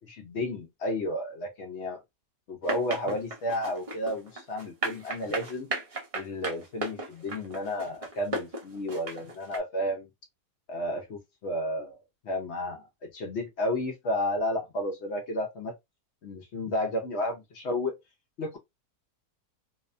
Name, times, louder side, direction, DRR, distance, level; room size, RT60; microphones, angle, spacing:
voice 1, 0.2-2.0 2.5-5.7 6.1-10.1 10.7-12.0 12.2-15.7 16.2-18.0 18.4-18.6, left 1 dB, 60° left, 0.7 m, -32 dB
sound 1, 2.6-9.6, right 2 dB, 50° right, 0.4 m, -35 dB
2.7 x 2.1 x 2.4 m
omnidirectional pair, 1.7 m